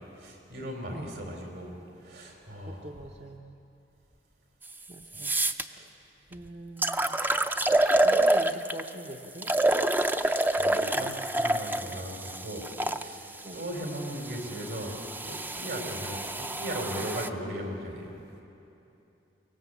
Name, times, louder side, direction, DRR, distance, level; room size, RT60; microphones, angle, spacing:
voice 1, 0.2-1.7 2.0-2.9 5.7-5.9 10.1-12.7 12.9-15.0 15.2-18.1, right 1 dB, 75° right, 1 dB, 4.4 m, -38 dB
voice 2, 2.6-3.6 4.9-5.4 5.6-9.6 13.4-13.6 15.8-16.0 16.9-17.8, right 1 dB, 40° right, 2 dB, 0.8 m, -44 dB
sound 1, 4.6-4.7 5.1-5.6 6.3-6.4 6.8-8.9 9.4-13.0 13.9-17.3, right 1 dB, 10° right, 0.5 m, -27 dB
23.0 x 18.5 x 8.3 m, 2.8 s
head